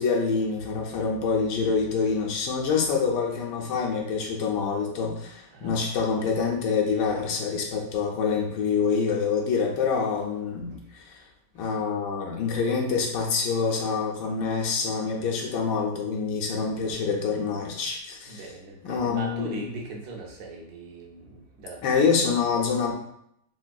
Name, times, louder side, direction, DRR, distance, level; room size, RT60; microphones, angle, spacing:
voice 1, 0.0-10.7 11.5-18.5 18.8-19.6 21.8-22.9, left 5 dB, 75° left, 0 dB, 1.2 m, -26 dB
voice 2, 0.7-1.1 5.5-5.7 10.7-10.8 18.3-22.1, right 3 dB, 65° right, 0 dB, 1.1 m, -40 dB
3.7 x 2.6 x 2.2 m, 0.74 s
omnidirectional pair, 1.9 m